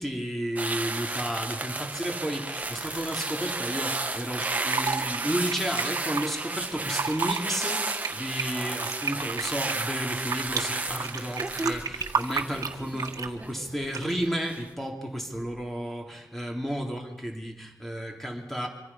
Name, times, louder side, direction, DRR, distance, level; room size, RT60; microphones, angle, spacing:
voice 1, 0.0-18.7, equal, 5° left, 2 dB, 3.4 m, -32 dB
sound 1, 0.6-13.9 14.3-14.6, right 2 dB, 25° right, 1.3 m, -33 dB
Fill (with liquid), 4.2-6.2 6.8-7.4 7.8-10.6 11.0-13.4 13.9-14.3, right 5 dB, 80° right, 1.8 m, -31 dB
25.5 x 25.0 x 5.7 m, 0.93 s
wide cardioid pair, 150°, 6 cm